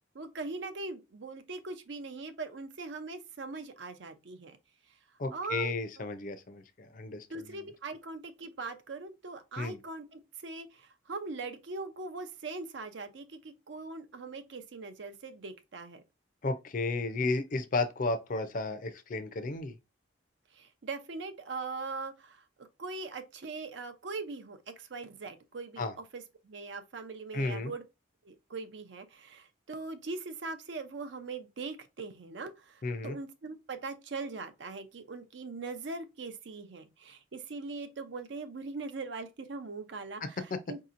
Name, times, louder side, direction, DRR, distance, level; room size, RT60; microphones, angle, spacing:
voice 1, 0.1-4.6 5.3-5.7 7.3-16.0 20.5-27.8 28.2-40.8, right 3 dB, 65° right, 0.6 m, -41 dB
voice 2, 5.2-7.4 9.6-9.8 16.4-19.8 25.8-25.9 27.3-27.7 32.8-33.2 40.2-40.6, left 3 dB, 45° left, 0.5 m, -33 dB
4.9 x 2.8 x 2.5 m
head